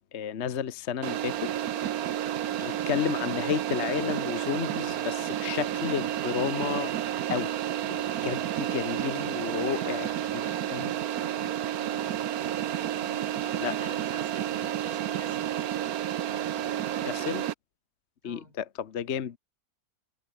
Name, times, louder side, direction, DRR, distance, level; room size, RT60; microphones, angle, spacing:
voice 1, 0.1-1.5 2.6-6.9 7.3-7.6 7.9-10.1 10.7-11.0 13.6-13.7 17.0-17.4 18.2-19.4, left 8 dB, 45° left, 1.1 m, -32 dB
sound 1, 1.0-17.5, right 11 dB, 65° right, 1.3 m, -31 dB
voice 2, 2.5-2.9 9.4-12.2 13.0-15.6 16.3-17.3 18.2-18.6, equal, 20° right, 8.3 m, -49 dB
omnidirectional pair, 1.8 m